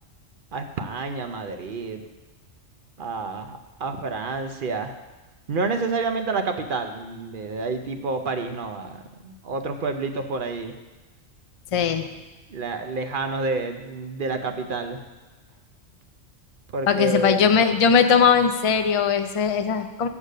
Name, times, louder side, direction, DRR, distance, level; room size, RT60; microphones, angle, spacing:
voice 1, 0.5-2.0 3.0-4.9 5.5-10.7 12.5-15.0 16.7-17.5, right 3 dB, 50° right, 6 dB, 0.7 m, -29 dB
voice 2, 11.7-12.0 16.9-20.1, left 6 dB, 60° left, 7 dB, 0.3 m, -19 dB
7.3 x 6.5 x 6.5 m, 1.2 s
omnidirectional pair, 1.3 m